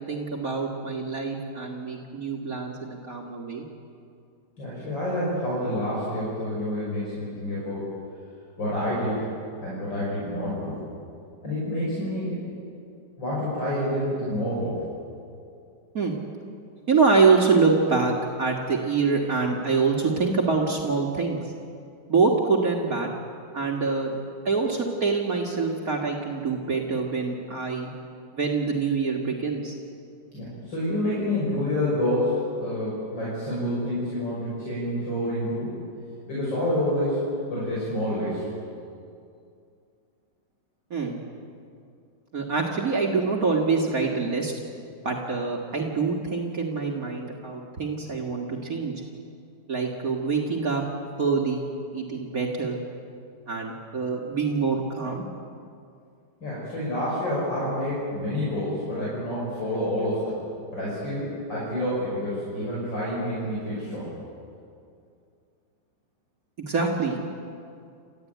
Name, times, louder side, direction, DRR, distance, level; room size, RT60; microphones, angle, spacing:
voice 1, 0.0-3.6 15.9-16.1 16.9-21.5 22.1-23.1 23.5-27.9 28.3-29.7 40.9-41.2 42.3-44.5 45.0-48.9 49.7-50.8 51.2-51.7 51.9-52.8 53.5-55.2 66.7-67.2, right 4 dB, 50° right, 0 dB, 2.2 m, -25 dB
voice 2, 4.6-7.8 8.6-9.3 9.6-10.7 11.4-12.4 13.2-14.8 30.3-35.7 36.3-37.2 37.5-38.5 56.4-60.4 60.7-64.1, left 1 dB, 80° left, -7 dB, 6.6 m, -28 dB
29.5 x 14.0 x 9.3 m, 2.4 s
omnidirectional pair, 2.0 m